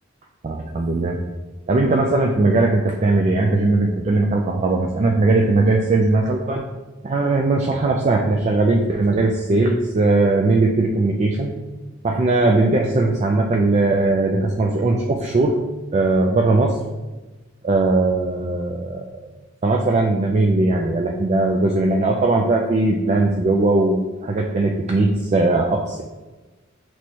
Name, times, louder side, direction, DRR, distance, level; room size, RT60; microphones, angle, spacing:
voice 1, 0.4-1.2 1.7-6.6 7.0-11.5 12.0-15.6 15.9-16.8 17.6-19.3 19.6-26.0, right 2 dB, 35° right, 1 dB, 0.3 m, -19 dB
6.0 x 3.1 x 2.9 m, 1.2 s
head